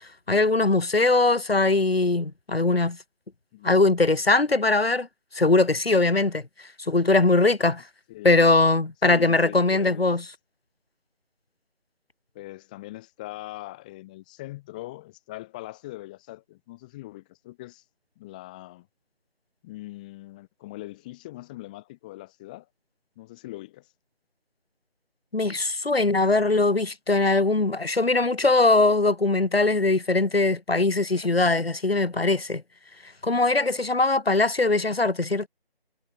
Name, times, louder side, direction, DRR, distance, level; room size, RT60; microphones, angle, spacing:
voice 1, 0.3-3.0 3.6-5.1 5.3-6.4 6.9-7.8 8.2-10.2 25.3-32.6 33.2-35.5, left 3 dB, 70° left, 5.9 m, -21 dB
voice 2, 9.0-10.1 12.3-17.8 18.2-18.9 19.6-22.7 23.2-23.9, left 18 dB, 10° left, 4.5 m, -41 dB
figure-of-eight pair, 175°, 31 cm